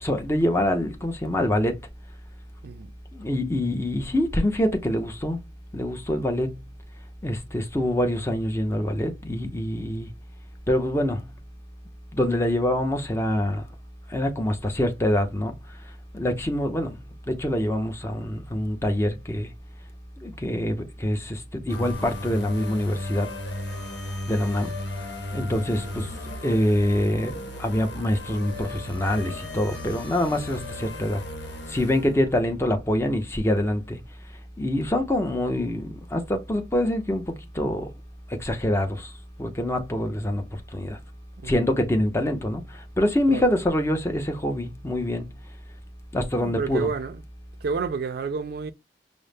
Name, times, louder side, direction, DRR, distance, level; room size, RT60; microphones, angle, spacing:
voice 1, 0.0-1.8 3.1-5.4 5.7-6.5 7.2-10.1 10.7-11.2 12.1-13.6 14.1-15.5 16.1-17.0 17.3-19.5 20.2-23.3 24.3-24.7 25.3-26.1 26.4-31.2 31.7-34.0 34.6-37.9 38.4-39.1 39.4-40.4 40.7-41.0 41.5-42.6 43.0-45.3 46.1-46.9, left 1 dB, 15° left, 0.6 m, -25 dB
sound 1, 21.7-32.5, left 1 dB, 70° left, 1.1 m, -36 dB
voice 2, 46.4-47.2 47.6-48.7, right 5 dB, 60° right, 0.4 m, -30 dB
5.2 x 2.0 x 3.3 m
head